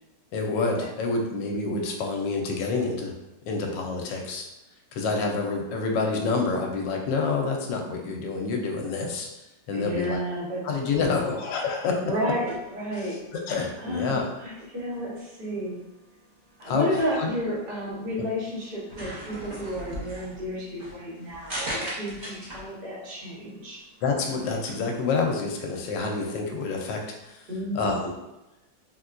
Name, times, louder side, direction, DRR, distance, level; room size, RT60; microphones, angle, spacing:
voice 1, 0.3-3.1 3.5-4.5 4.9-9.3 9.7-10.2 10.6-12.0 12.9-14.2 16.6-16.9 17.2-17.3 18.2-18.3 24.0-27.0 27.3-27.5 27.7-28.1, left 4 dB, 80° left, 1 dB, 1.2 m, -28 dB
voice 2, 9.7-11.4 12.0-13.1 13.8-15.8 16.6-23.8 27.5-28.0, equal, 35° right, -8 dB, 1.1 m, -31 dB
sound 1, 12.4-27.3, right 1 dB, 75° right, 0.4 m, -42 dB
4.1 x 2.2 x 2.4 m, 0.96 s
omnidirectional pair, 2.0 m